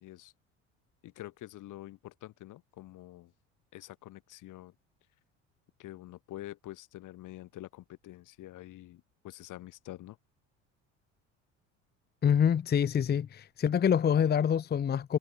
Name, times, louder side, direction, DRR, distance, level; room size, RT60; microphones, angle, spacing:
voice 1, 0.0-0.3 1.0-3.3 3.7-4.7 5.8-10.2, left 16 dB, 60° left, 1.5 m, -47 dB
voice 2, 12.2-15.2, left 8 dB, 25° left, 0.7 m, -26 dB
hypercardioid pair, 70°, 36 cm